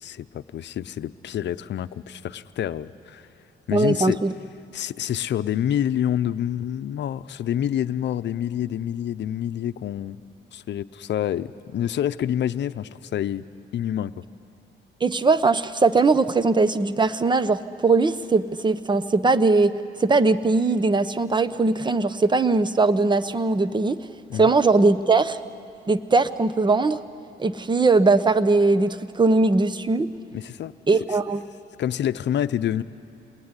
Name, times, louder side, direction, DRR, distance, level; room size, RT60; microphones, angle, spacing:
voice 1, 0.0-3.2 3.7-4.2 4.7-10.2 10.5-13.5 13.7-14.1 24.3-24.5 30.3-30.7 31.8-32.8, left 10 dB, 65° left, 13 dB, 0.8 m, -27 dB
voice 2, 3.7-4.3 15.0-19.7 20.0-24.0 24.3-25.4 25.9-27.0 27.4-30.1 30.9-31.4, right 3 dB, 20° right, 13 dB, 0.9 m, -20 dB
28.5 x 20.5 x 9.8 m, 2.6 s
cardioid pair, 90°, 20 cm